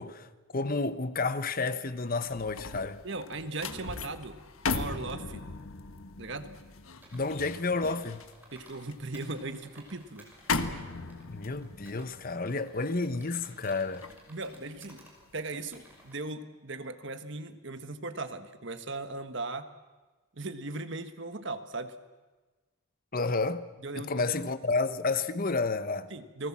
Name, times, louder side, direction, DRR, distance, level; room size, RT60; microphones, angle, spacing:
voice 1, 0.0-3.0 7.1-8.2 11.3-14.1 23.1-23.7 23.9-26.1, left 3 dB, 40° left, 1.0 m, -31 dB
sound 1, 2.1-15.4 15.8-16.1, left 4 dB, 70° left, 1.4 m, -38 dB
voice 2, 3.0-4.4 4.7-5.5 6.2-6.5 8.5-10.3 14.3-15.0 15.3-19.7 20.3-21.9 23.8-24.2 26.1-26.5, right 2 dB, 55° right, 1.5 m, -38 dB
Computer keyboard, 7.0-8.8 9.1-12.1 12.5-15.1 15.5-16.2, right 1 dB, 10° right, 5.5 m, -56 dB
29.5 x 19.5 x 7.4 m
head